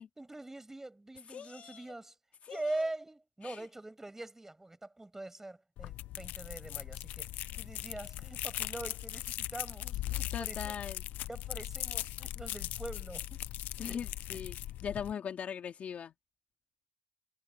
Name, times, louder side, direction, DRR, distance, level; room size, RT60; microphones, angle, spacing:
voice 1, 0.0-2.1 2.5-10.7 11.3-13.4 13.8-14.0 14.3-14.4, right 2 dB, 15° right, 7.1 m, -43 dB
voice 2, 1.3-1.9 2.4-2.9 3.4-3.6 10.3-11.0 13.8-14.5 14.8-16.1, left 8 dB, 55° left, 2.8 m, -40 dB
sound 1, 5.8-15.1, left 15 dB, 80° left, 0.6 m, -39 dB
supercardioid pair, 75°, 3 cm